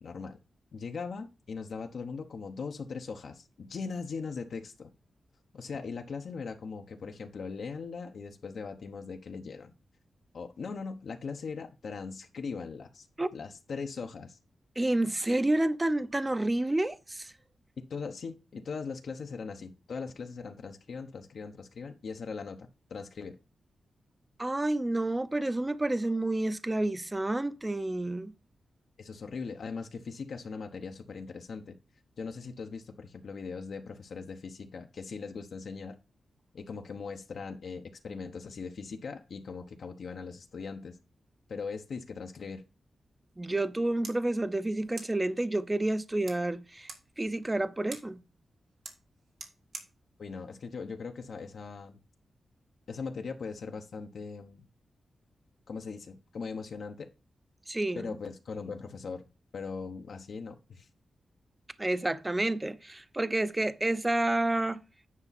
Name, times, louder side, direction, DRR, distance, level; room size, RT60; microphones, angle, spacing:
voice 1, 0.0-0.4 0.7-4.9 5.5-9.7 10.3-13.1 13.3-14.4 17.9-23.4 29.0-31.8 32.2-36.0 36.5-41.0 41.5-42.6 50.2-52.0 52.9-54.7 55.7-57.1 57.9-59.2 59.5-60.9, left 5 dB, 70° left, 1.0 m, -40 dB
voice 2, 14.8-17.3 24.4-28.3 43.4-46.9 47.2-48.2 57.7-58.1 61.8-64.8, right 2 dB, 15° right, 0.6 m, -29 dB
sound 1, 44.0-51.6, right 4 dB, 80° right, 1.9 m, -51 dB
9.7 x 5.4 x 4.1 m
wide cardioid pair, 110°, 0 cm